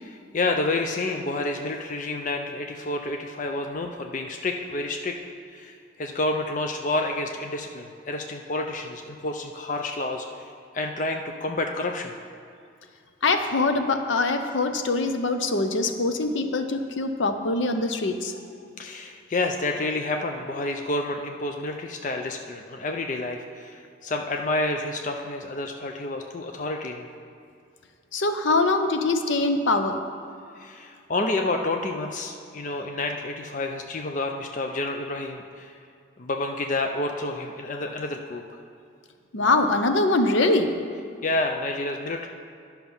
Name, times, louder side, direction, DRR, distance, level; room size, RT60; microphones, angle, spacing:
voice 1, 0.0-5.2 5.5-12.2 18.8-27.1 30.6-35.8 36.2-38.4 41.2-42.3, left 2 dB, 40° left, 3 dB, 0.5 m, -29 dB
voice 2, 13.2-18.3 28.1-30.0 39.3-40.7, left 2 dB, 75° left, 7 dB, 0.7 m, -23 dB
10.5 x 5.8 x 5.4 m, 2.4 s
head